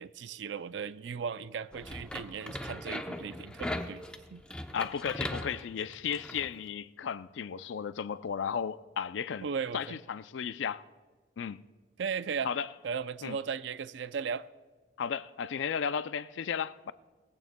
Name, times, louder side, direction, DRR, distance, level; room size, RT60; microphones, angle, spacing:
voice 1, 0.0-4.0 4.3-4.4 9.4-10.0 12.0-12.5 12.8-14.5, right 6 dB, 70° right, 0.4 m, -36 dB
sound 1, 1.7-6.5, left 1 dB, 5° left, 0.6 m, -39 dB
voice 2, 4.7-9.5 9.7-10.8 11.4-11.6 12.4-12.7 13.2-13.4 15.0-16.9, left 7 dB, 75° left, 0.4 m, -34 dB
20.0 x 16.0 x 2.2 m
head